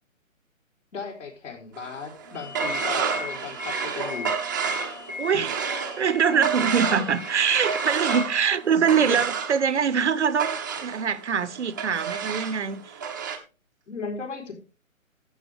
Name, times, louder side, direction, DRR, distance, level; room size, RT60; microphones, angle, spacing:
voice 1, 0.9-4.3 5.3-5.4 6.3-6.4 6.9-7.0 9.1-9.2 13.9-14.5, left 5 dB, 60° left, 4.1 m, -36 dB
sound 1, 1.8-13.4, right 6 dB, 15° right, 0.7 m, -30 dB
Wind instrument woodwind instrument, 2.2-9.0, left 3 dB, 5° left, 1.1 m, -49 dB
sound 2, 2.3-8.2, left 5 dB, 30° left, 0.6 m, -38 dB
voice 2, 5.2-5.5 6.0-13.0, right 7 dB, 55° right, 0.8 m, -23 dB
12.5 x 8.0 x 3.5 m
figure-of-eight pair, 150°, 42 cm